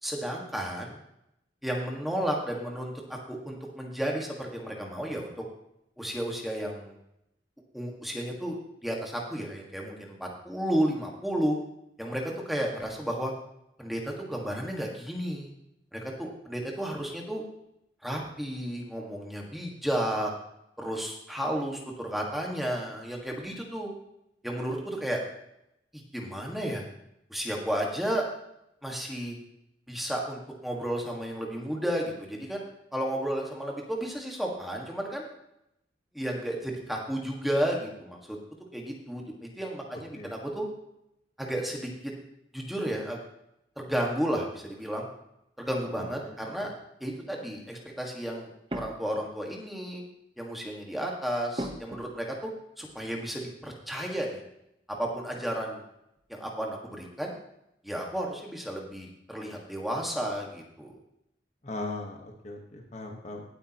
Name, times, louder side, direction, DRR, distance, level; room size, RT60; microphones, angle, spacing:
voice 1, 0.0-1.0 1.6-5.3 6.0-7.0 7.7-8.5 8.8-11.6 12.0-13.3 13.8-15.5 15.9-17.4 18.0-20.3 20.8-23.9 24.4-25.2 25.9-26.8 27.3-28.3 28.8-29.4 29.9-32.6 32.9-35.2 36.1-38.4 38.7-40.7 41.4-42.1 42.5-43.2 43.8-45.1 45.6-46.7 47.0-50.0 50.4-52.5 52.8-54.4 54.9-55.8 56.3-57.3 57.8-61.0, equal, ahead, -1 dB, 1.7 m, -32 dB
sound 1, 48.7-49.4 49.9-50.2 51.5-52.5 52.9-53.0 55.3-55.7 55.9-56.6, right 1 dB, 30° right, 1.0 m, -40 dB
voice 2, 61.6-63.4, left 2 dB, 40° left, 1 dB, 1.3 m, -39 dB
18.0 x 8.6 x 3.0 m, 0.80 s
head